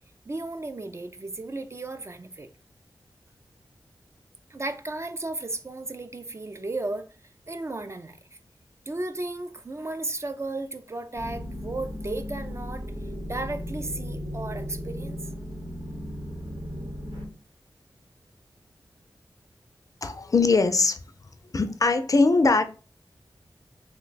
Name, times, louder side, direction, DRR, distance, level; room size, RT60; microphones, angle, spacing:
voice 1, 0.3-2.5 4.5-7.1 7.5-8.2 8.9-12.9 13.3-15.2, right 2 dB, 35° right, 0.4 m, -34 dB
sound 1, 11.1-17.3, equal, 80° right, 0.9 m, -36 dB
voice 2, 20.0-21.0 21.5-22.6, left 3 dB, 45° left, 0.4 m, -21 dB
2.9 x 2.2 x 3.9 m
wide cardioid pair, 60°, 8 cm